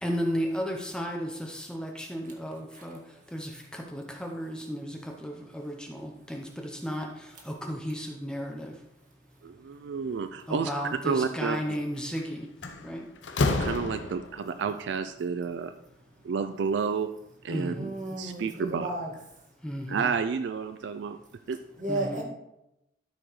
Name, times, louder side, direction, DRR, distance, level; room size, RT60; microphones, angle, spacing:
voice 1, 0.0-8.8 10.5-13.1 17.5-17.9 19.6-20.0 21.9-22.2, equal, 5° left, 1 dB, 0.7 m, -34 dB
voice 2, 9.4-10.7 11.0-11.6 13.5-15.7 16.2-17.1 17.4-18.9 19.9-21.2 21.5-21.6, right 5 dB, 70° right, 9 dB, 0.3 m, -30 dB
Slam, 12.0-12.2 12.6-14.5, left 3 dB, 80° left, 0.7 m, -29 dB
voice 3, 17.7-19.1 21.8-22.2, right 2 dB, 40° right, -1 dB, 1.7 m, -33 dB
12.5 x 5.0 x 3.1 m, 0.87 s
head